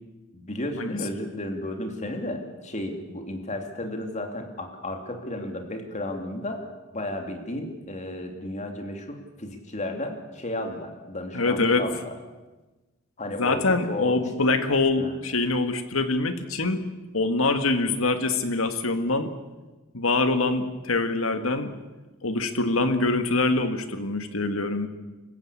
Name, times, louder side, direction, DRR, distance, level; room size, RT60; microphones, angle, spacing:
voice 1, 0.3-6.7 6.9-12.1 13.2-14.2 15.0-15.1, left 1 dB, 35° left, 5 dB, 2.9 m, -33 dB
voice 2, 11.3-11.8 13.4-16.8 17.1-19.3 19.9-21.8 22.2-24.9, left 3 dB, 80° left, 9 dB, 1.9 m, -24 dB
26.0 x 15.5 x 8.5 m, 1.2 s
head